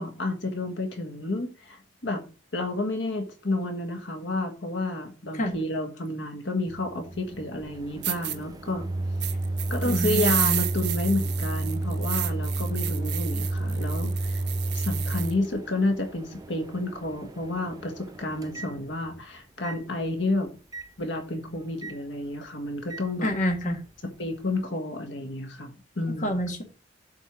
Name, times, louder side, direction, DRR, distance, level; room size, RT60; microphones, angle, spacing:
voice 1, 0.0-2.2 2.5-8.9 9.7-14.4 14.7-20.5 21.0-23.3 24.2-26.3, left 2 dB, 80° left, 1.5 m, -30 dB
Microwave oven, 6.7-19.2 19.6-19.8 20.7-20.9 21.8-22.0 22.9-23.1, right 2 dB, 20° right, 0.5 m, -32 dB
sound 1, 7.6-7.7 8.0-8.4 9.2-15.3, right 14 dB, 65° right, 0.9 m, -31 dB
voice 2, 9.8-10.7 23.2-23.8 26.2-26.6, equal, 45° left, 1.8 m, -27 dB
8.0 x 4.6 x 6.0 m
head